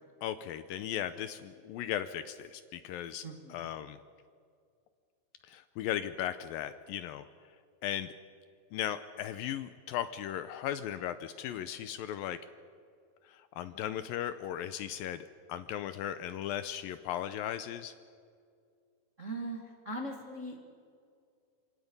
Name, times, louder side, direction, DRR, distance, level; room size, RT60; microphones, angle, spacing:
voice 1, 0.2-3.2 3.5-4.0 5.5-7.3 7.8-8.1 8.7-12.4 13.2-17.9, left 11 dB, 75° left, 12 dB, 2.2 m, -37 dB
voice 2, 3.2-3.6 19.2-20.6, right 1 dB, 35° right, 1 dB, 1.2 m, -40 dB
26.5 x 26.5 x 5.4 m, 2.2 s
omnidirectional pair, 4.5 m